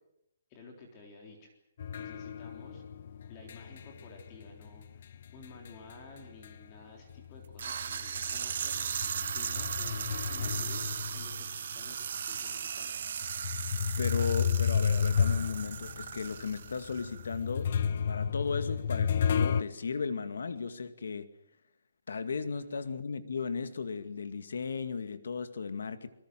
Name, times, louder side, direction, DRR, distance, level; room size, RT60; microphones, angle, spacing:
voice 1, 0.5-1.5 2.0-2.8 3.3-8.9 9.3-12.9, left 3 dB, 20° left, 3.6 m, -52 dB
sound 1, 1.8-6.8 7.1-11.8 12.4-12.5 13.2-19.6, left 7 dB, 40° left, 0.9 m, -32 dB
sound 2, 7.6-17.4, right 7 dB, 45° right, 1.2 m, -37 dB
voice 2, 14.0-17.7 18.1-21.3 22.1-26.1, left 5 dB, 75° left, 2.2 m, -35 dB
24.5 x 22.0 x 7.7 m
hypercardioid pair, 180°, 0 cm